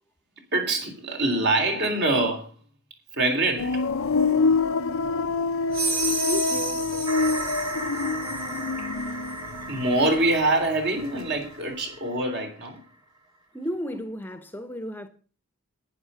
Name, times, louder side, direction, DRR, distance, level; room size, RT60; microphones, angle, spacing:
voice 1, 0.5-2.5 3.1-3.8 6.1-6.3 6.6-6.7 9.7-12.8, right 2 dB, 50° right, 3.6 m, -24 dB
sound 1, 3.6-10.4 10.7-11.5, left 4 dB, 70° left, 0.6 m, -26 dB
sound 2, 5.7-8.7, right 3 dB, 75° right, 6.1 m, -31 dB
voice 2, 6.2-6.9 7.5-7.6 13.5-15.1, equal, 10° left, 1.0 m, -33 dB
sound 3, 7.1-12.8, right 2 dB, 20° right, 1.3 m, -36 dB
11.0 x 10.0 x 5.6 m
head